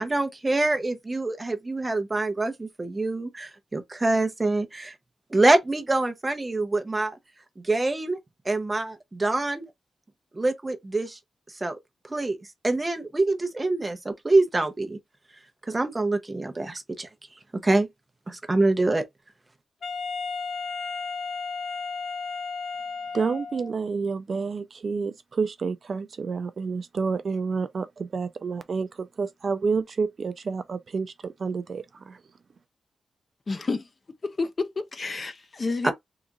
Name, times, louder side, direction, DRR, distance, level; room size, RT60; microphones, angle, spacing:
voice 1, 0.0-4.9 5.3-7.2 7.6-8.2 8.5-9.6 10.3-11.2 11.6-11.8 12.1-12.4 12.6-15.0 15.7-17.1 17.5-17.9 18.3-19.0 35.8-35.9, right 2 dB, 15° right, 0.6 m, -25 dB
Wind instrument woodwind instrument, 19.8-23.7, left 5 dB, 65° left, 1.0 m, -33 dB
voice 2, 23.1-32.2, right 5 dB, 45° right, 0.3 m, -29 dB
voice 3, 33.5-33.9 34.2-35.9, left 3 dB, 30° left, 0.4 m, -30 dB
3.8 x 2.8 x 2.3 m
wide cardioid pair, 165°, 0 cm